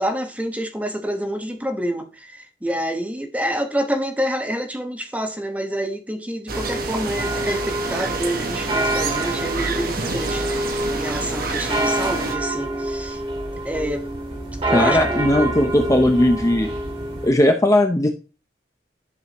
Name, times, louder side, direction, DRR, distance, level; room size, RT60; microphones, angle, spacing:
voice 1, 0.0-13.2 13.6-14.0 14.6-15.2, equal, 10° right, 4 dB, 1.1 m, -27 dB
sound 1, 6.5-17.3, right 1 dB, 30° right, 2.4 m, -27 dB
sound 2, 6.5-12.4, right 3 dB, 55° right, 1.1 m, -29 dB
voice 2, 14.7-16.7 17.2-18.1, left 1 dB, 20° left, 5 dB, 0.7 m, -17 dB
11.0 x 6.3 x 3.0 m, 0.32 s
head